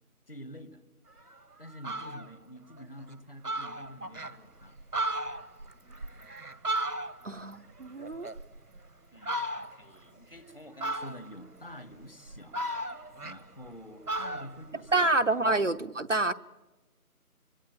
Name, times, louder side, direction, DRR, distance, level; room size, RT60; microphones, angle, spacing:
voice 1, 0.3-0.8 1.6-4.8 9.1-12.6 13.2-15.2 15.4-15.6, equal, 40° left, 13 dB, 1.5 m, -48 dB
Fowl, 1.2-1.3 1.7-2.3 2.8-2.9 3.1-3.2 3.4-4.3 4.8-7.4 7.7-8.8 9.2-9.9 10.8-11.4 12.0-13.8 14.1-15.6, right 1 dB, 80° right, 1.7 m, -35 dB
voice 2, 7.2-8.3 14.9-16.3, right 2 dB, 55° right, 10 dB, 0.9 m, -27 dB
25.5 x 23.0 x 9.0 m, 1.1 s
figure-of-eight pair, 170°, 45 cm